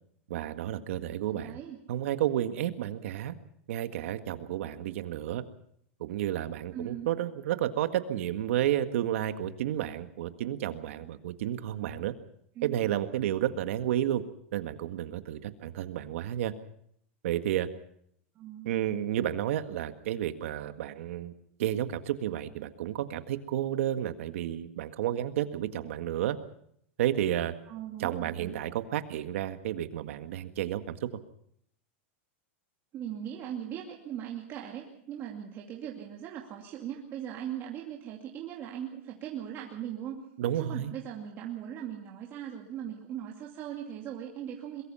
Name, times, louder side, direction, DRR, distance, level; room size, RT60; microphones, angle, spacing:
voice 1, 0.3-1.6 1.9-3.3 3.7-5.4 6.0-12.1 12.6-14.2 14.5-16.5 17.2-17.7 18.6-21.3 21.6-26.4 27.0-27.5 28.0-31.1 40.4-40.9, right 12 dB, 75° right, 9 dB, 1.8 m, -31 dB
voice 2, 1.3-1.8 6.7-7.1 12.6-12.9 18.4-18.7 27.7-28.5 32.9-40.2 40.5-44.8, right 10 dB, 30° right, -1 dB, 2.5 m, -39 dB
22.5 x 22.5 x 5.7 m, 0.68 s
supercardioid pair, 155°, 7 cm